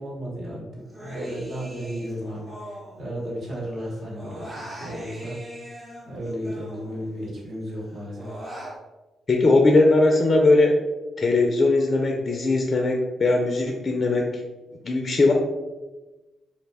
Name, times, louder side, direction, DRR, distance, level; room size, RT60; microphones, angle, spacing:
voice 1, 0.0-2.5 3.0-5.4 6.1-8.4, equal, 60° right, -4 dB, 1.1 m, -34 dB
Human voice, 0.9-3.5 3.8-7.3 7.7-8.8, right 1 dB, 35° right, 0.9 m, -41 dB
voice 2, 9.3-10.8 11.2-14.4 14.9-15.3, left 2 dB, 45° left, 2 dB, 0.4 m, -19 dB
2.3 x 2.2 x 3.3 m, 1.1 s
supercardioid pair, 55°, 0 cm